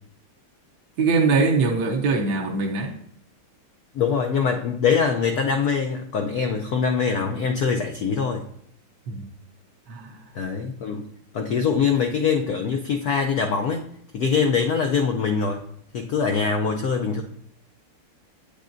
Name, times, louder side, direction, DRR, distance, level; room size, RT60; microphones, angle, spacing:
voice 1, 1.0-3.0 9.1-9.3 9.9-10.3, right 4 dB, 65° right, 1 dB, 1.2 m, -22 dB
voice 2, 3.9-8.5 10.3-13.8 14.1-15.6 15.9-17.2, left 6 dB, 90° left, 3 dB, 0.8 m, -23 dB
8.5 x 8.5 x 2.6 m, 0.69 s
omnidirectional pair, 2.4 m